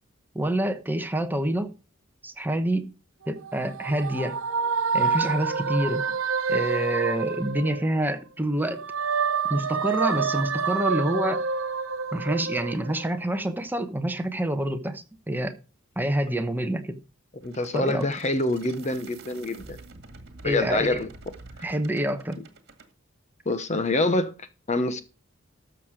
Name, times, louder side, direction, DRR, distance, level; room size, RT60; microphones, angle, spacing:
voice 1, 0.3-1.7 2.2-2.9 3.3-4.4 4.9-6.0 6.5-8.8 9.5-11.4 12.1-15.5 16.0-17.0 17.7-18.1 20.4-21.0 21.6-22.4, right 1 dB, 10° right, 1.0 m, -27 dB
sound 1, 3.2-8.2 8.6-13.4, right 5 dB, 80° right, 1.0 m, -28 dB
voice 2, 17.4-19.8 20.4-21.1 23.5-25.0, left 2 dB, 35° left, 1.0 m, -26 dB
sound 2, 17.4-22.9, right 3 dB, 55° right, 2.0 m, -47 dB
13.0 x 6.4 x 5.1 m
head